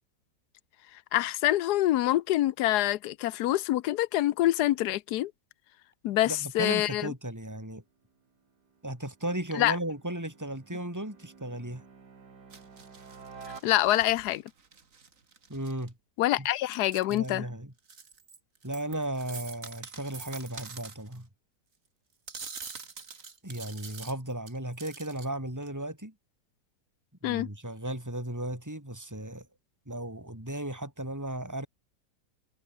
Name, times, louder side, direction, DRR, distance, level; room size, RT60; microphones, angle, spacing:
voice 1, 1.1-5.3 6.0-7.1 9.6-9.8 13.6-14.4 16.2-17.5 27.2-27.5, left 14 dB, 75° left, 1.2 m, -26 dB
voice 2, 6.3-7.8 8.8-11.8 15.5-15.9 16.4-16.5 17.1-17.7 18.6-21.3 23.4-26.1 27.2-29.5 29.9-31.7, right 1 dB, 10° right, 5.1 m, -35 dB
sound 1, 7.9-14.3, right 5 dB, 70° right, 3.1 m, -52 dB
sound 2, 12.5-15.9 16.5-17.3 17.8-21.2 22.3-25.3 25.6-25.7, right 5 dB, 50° right, 2.5 m, -45 dB
omnidirectional pair, 1.8 m